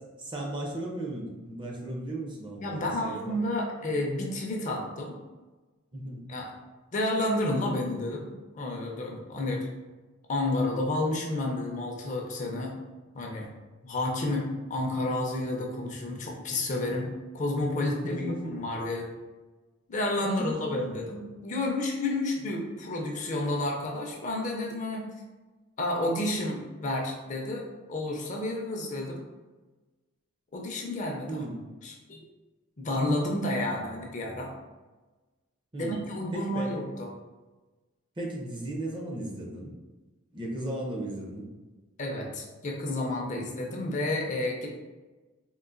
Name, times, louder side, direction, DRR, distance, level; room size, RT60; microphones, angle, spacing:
voice 1, 0.0-3.4 5.9-6.3 9.4-9.7 18.0-18.6 20.4-20.6 31.3-31.6 35.7-36.0 36.3-36.7 38.2-39.7 40.3-41.5, right 1 dB, 25° right, -1 dB, 0.5 m, -36 dB
voice 2, 2.6-5.2 6.3-6.5 6.9-9.7 10.3-12.8 13.1-13.5 13.8-14.4 14.7-19.1 19.9-25.1 25.8-29.2 30.5-31.4 31.8-32.2 32.8-34.5 35.8-37.1 42.0-44.7, left 1 dB, 35° left, 0 dB, 0.5 m, -30 dB
3.7 x 2.5 x 2.5 m, 1.2 s
head